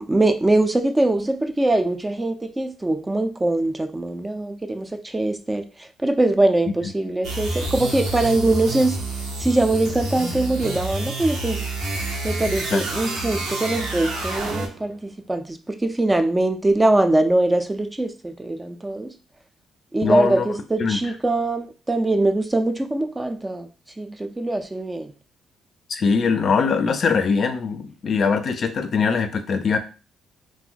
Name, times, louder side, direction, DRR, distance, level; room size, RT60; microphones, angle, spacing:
voice 1, 0.0-9.0 9.4-11.6 12.2-19.1 19.9-23.7 24.0-25.1, right 2 dB, 15° right, 8 dB, 0.4 m, -22 dB
sound 1, 7.2-14.9, right 2 dB, 85° right, 0.8 m, -28 dB
voice 2, 20.0-20.4 20.8-21.0 25.9-29.8, left 5 dB, 55° left, 8 dB, 0.4 m, -21 dB
2.5 x 2.1 x 3.9 m, 0.35 s
cardioid pair, 90°, 0 cm